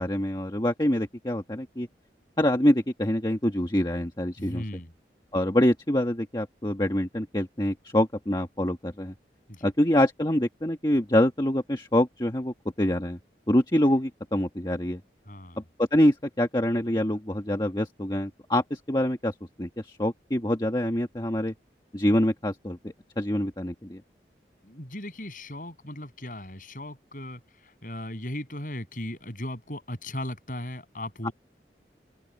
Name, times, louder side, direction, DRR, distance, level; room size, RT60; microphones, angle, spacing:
voice 1, 0.0-1.9 2.4-4.6 5.3-9.1 9.6-13.2 13.5-15.0 15.6-21.5 21.9-24.0 31.2-31.3, left 1 dB, 25° left, 1.4 m, -25 dB
voice 2, 4.4-4.9 9.5-9.7 15.3-15.6 24.6-31.3, left 1 dB, 50° left, 7.7 m, -37 dB
open air
head